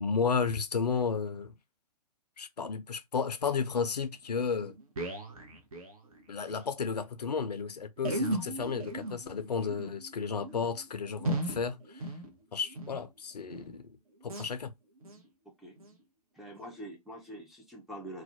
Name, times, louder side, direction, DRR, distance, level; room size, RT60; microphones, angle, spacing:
voice 1, 0.0-1.6 2.4-4.7 6.3-12.1 12.5-14.0 14.2-14.7, left 5 dB, 80° left, 0.4 m, -33 dB
sound 1, 4.2-4.3 4.5-6.7 6.9-7.0 7.2-7.4 8.0-13.0 13.4-13.8 14.2-14.5 15.0-15.3 15.8-15.9 16.6-16.7, right 1 dB, 60° right, 0.7 m, -37 dB
voice 2, 16.3-18.2, right 1 dB, ahead, 0.3 m, -45 dB
2.3 x 2.1 x 2.5 m
figure-of-eight pair, 115°, 20 cm